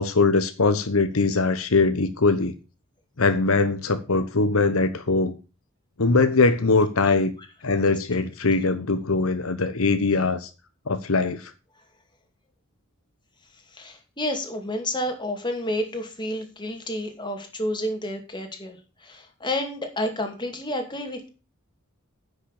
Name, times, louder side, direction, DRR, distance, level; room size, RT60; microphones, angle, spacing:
voice 1, 0.0-2.5 3.2-5.3 6.0-7.3 7.6-10.5 10.9-11.4, left 3 dB, 85° left, 1.1 m, -21 dB
voice 2, 13.7-21.3, left 1 dB, 20° left, 2.5 m, -30 dB
10.0 x 6.5 x 6.6 m
head